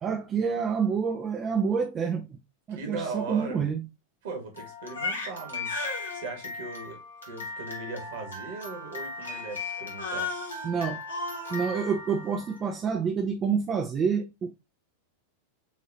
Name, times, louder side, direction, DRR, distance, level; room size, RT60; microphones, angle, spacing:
voice 1, 0.0-2.4 2.7-3.8 10.6-11.0 11.5-14.5, right 6 dB, 25° right, 0.6 m, -28 dB
voice 2, 2.7-3.7 4.2-5.8 6.1-10.3, right 4 dB, 55° right, 1.7 m, -38 dB
Crying sobbing, 4.6-12.7, left 3 dB, 75° left, 1.3 m, -36 dB
5.8 x 2.8 x 2.8 m
figure-of-eight pair, 90°, 0 cm